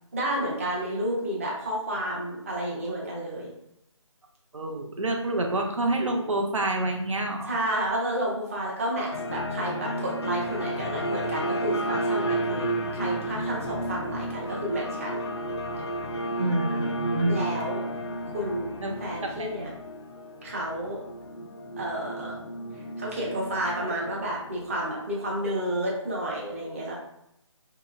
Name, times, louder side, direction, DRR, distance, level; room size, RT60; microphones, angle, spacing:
voice 1, 0.1-3.5 7.4-15.2 17.3-17.8 18.3-18.7 19.0-19.7 20.4-21.0 21.8-22.3 23.0-27.0, right 1 dB, 25° right, -4 dB, 0.6 m, -31 dB
voice 2, 4.5-7.5 16.4-17.5 18.8-19.5, right 2 dB, 75° right, 2 dB, 0.6 m, -28 dB
sound 1, 9.1-25.4, right 1 dB, 55° left, 0.4 m, -32 dB
2.9 x 2.8 x 2.4 m, 0.78 s
figure-of-eight pair, 165°, 16 cm